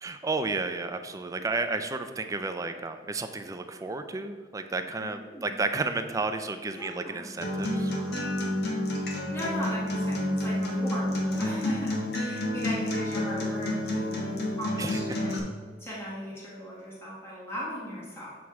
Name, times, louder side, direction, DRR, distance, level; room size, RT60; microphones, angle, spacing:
voice 1, 0.0-8.2 14.8-15.0, right 3 dB, 20° right, 8 dB, 0.4 m, -32 dB
voice 2, 5.0-5.5 6.7-7.3 9.3-11.1 11.4-15.4 15.8-18.4, equal, 15° left, -7 dB, 1.5 m, -38 dB
Acoustic guitar, 7.4-15.4, left 1 dB, 65° left, 1.1 m, -29 dB
7.3 x 3.1 x 4.7 m, 1.4 s
head